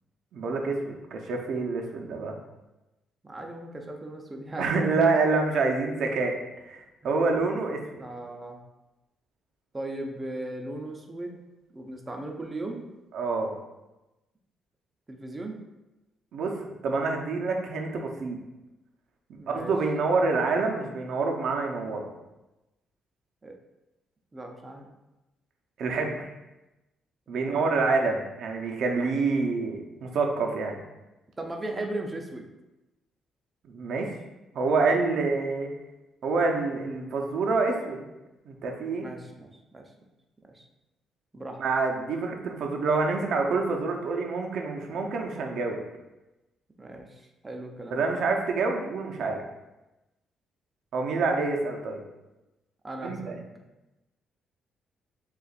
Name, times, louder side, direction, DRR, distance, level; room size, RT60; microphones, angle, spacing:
voice 1, 0.3-2.3 4.6-6.3 6.6-8.0 13.1-13.5 16.3-16.5 16.8-18.4 19.3-22.0 25.8-26.3 27.3-30.7 33.6-34.2 34.5-35.7 36.2-38.0 38.5-39.1 41.6-45.8 47.9-49.4 50.9-52.0 53.0-53.3, right 3 dB, 70° right, 1 dB, 0.7 m, -27 dB
voice 2, 3.2-4.7 8.0-8.6 9.7-11.4 11.7-12.9 15.1-15.6 19.4-19.7 23.4-23.6 24.3-24.9 27.3-27.6 31.4-32.5 39.0-39.9 40.5-40.6 41.3-41.6 46.8-48.1 52.8-53.4, right 1 dB, 20° right, 2 dB, 0.6 m, -37 dB
6.7 x 2.5 x 2.4 m, 1.0 s
cardioid pair, 90°, 0 cm